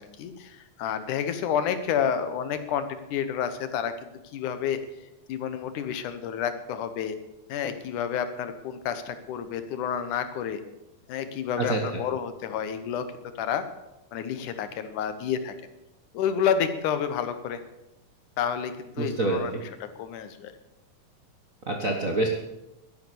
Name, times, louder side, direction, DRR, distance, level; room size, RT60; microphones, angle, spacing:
voice 1, 0.0-4.8 5.3-7.2 7.5-10.6 11.1-13.1 13.4-13.7 14.1-15.5 16.1-17.6 18.4-19.7 20.0-20.5, left 8 dB, 75° left, 10 dB, 2.5 m, -29 dB
voice 2, 19.0-19.4 21.7-22.3, right 2 dB, 50° right, 1 dB, 1.0 m, -26 dB
12.5 x 11.0 x 7.0 m, 0.95 s
omnidirectional pair, 3.6 m